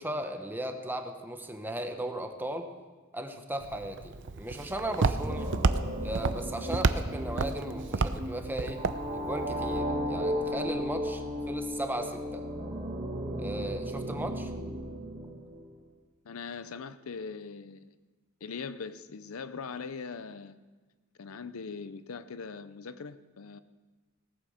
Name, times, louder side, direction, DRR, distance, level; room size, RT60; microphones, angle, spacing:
voice 1, 0.0-2.7 3.1-5.5 6.0-8.8 9.1-12.4 13.4-14.5, right 1 dB, 10° right, 5 dB, 1.1 m, -36 dB
Walk footsteps, 3.6-9.8, right 3 dB, 55° right, 0.6 m, -31 dB
sound 1, 4.6-15.8, equal, 30° right, 1.6 m, -35 dB
voice 2, 16.2-17.9 18.4-20.6 21.2-23.6, left 5 dB, 75° left, 14 dB, 0.6 m, -41 dB
18.0 x 9.3 x 6.6 m, 1.3 s
head